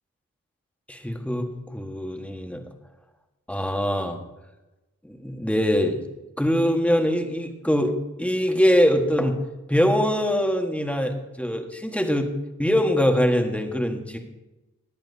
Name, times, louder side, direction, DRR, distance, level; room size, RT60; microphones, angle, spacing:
voice 1, 0.9-2.6 3.5-4.2 5.0-6.0 6.4-9.4 9.7-12.3 12.6-14.2, equal, 5° left, 4 dB, 1.5 m, -23 dB
19.0 x 8.7 x 2.8 m, 1.0 s
cardioid pair, 40°, 33 cm